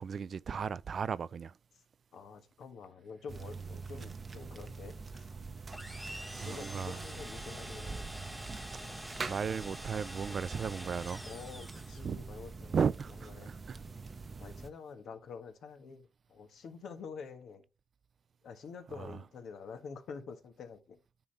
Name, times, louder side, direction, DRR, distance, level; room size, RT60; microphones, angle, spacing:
voice 1, 0.0-1.5 6.0-7.0 9.3-11.2 12.0-12.2 12.7-13.8 19.0-19.2, right 6 dB, 50° right, 0.3 m, -35 dB
voice 2, 2.1-5.3 6.4-8.5 8.8-9.0 10.3-10.4 11.2-12.8 13.3-13.6 14.4-17.6 18.4-21.0, left 5 dB, 65° left, 1.5 m, -47 dB
sound 1, 3.3-14.7, right 4 dB, 30° right, 0.8 m, -44 dB
sound 2, 5.7-12.2, equal, ahead, 1.4 m, -46 dB
9.7 x 4.0 x 4.2 m
cardioid pair, 90°, 0 cm